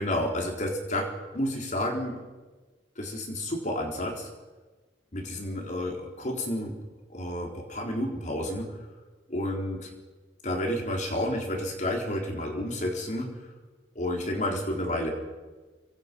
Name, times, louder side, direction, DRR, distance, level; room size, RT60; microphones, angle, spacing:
voice 1, 0.0-2.2 3.0-4.3 5.1-6.8 7.1-8.8 9.3-9.9 10.4-13.4 13.9-15.1, left 1 dB, 45° left, 1 dB, 4.2 m, -30 dB
26.0 x 24.5 x 5.5 m, 1.3 s
head